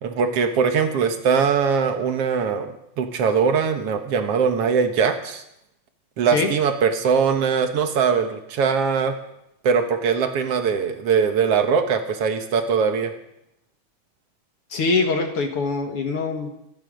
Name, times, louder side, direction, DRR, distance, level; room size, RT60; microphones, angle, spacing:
voice 1, 0.0-5.4 6.2-9.2 9.6-13.1, right 6 dB, 55° right, 6 dB, 1.9 m, -21 dB
voice 2, 14.7-16.7, left 3 dB, 50° left, 4 dB, 2.1 m, -23 dB
25.5 x 10.5 x 5.2 m, 0.81 s
omnidirectional pair, 3.8 m